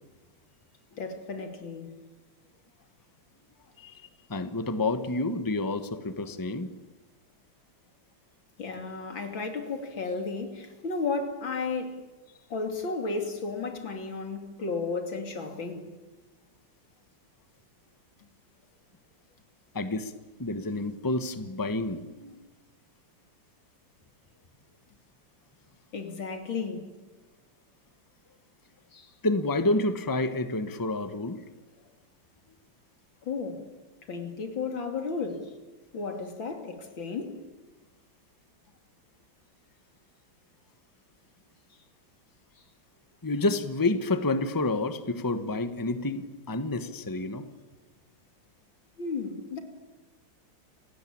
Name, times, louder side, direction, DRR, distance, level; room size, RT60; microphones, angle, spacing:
voice 1, 1.0-1.9 8.6-12.0 12.5-15.9 25.9-26.9 28.9-29.1 33.2-33.6 34.1-35.5 35.9-37.4 49.0-49.6, left 4 dB, 80° left, 3.5 m, -33 dB
voice 2, 4.3-6.7 19.7-20.1 20.4-22.4 29.2-31.4 43.2-47.5, left 2 dB, 10° left, 1.2 m, -29 dB
29.5 x 17.0 x 8.8 m
omnidirectional pair, 2.1 m